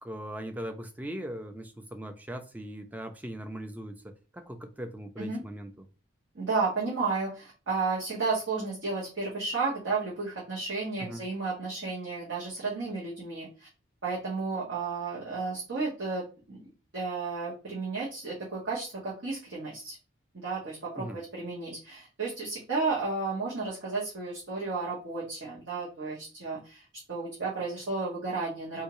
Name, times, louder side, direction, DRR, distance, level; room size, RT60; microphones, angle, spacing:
voice 1, 0.0-3.9 4.3-5.9 11.0-11.2 21.0-21.2, right 1 dB, 10° right, 6 dB, 0.4 m, -39 dB
voice 2, 6.3-13.7 14.0-16.6 16.9-20.0 20.4-28.8, right 4 dB, 80° right, -7 dB, 1.2 m, -33 dB
3.5 x 2.7 x 3.0 m, 0.34 s
head